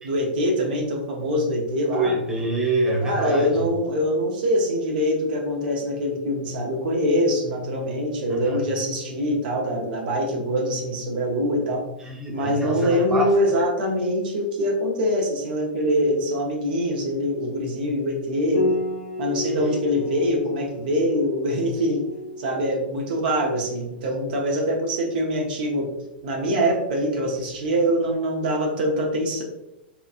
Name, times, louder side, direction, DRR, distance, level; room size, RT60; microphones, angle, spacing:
voice 1, 0.0-2.2 3.0-11.8 12.3-18.7 19.2-22.0 22.4-25.9 26.2-29.4, equal, 60° right, 0 dB, 0.7 m, -24 dB
voice 2, 1.9-3.6 8.3-8.6 12.0-13.6 19.4-19.7, right 2 dB, 10° right, -4 dB, 0.7 m, -26 dB
Piano, 18.5-27.9, left 1 dB, 75° left, 0.8 m, -34 dB
2.9 x 2.4 x 2.4 m, 0.90 s
hypercardioid pair, 110°, 6 cm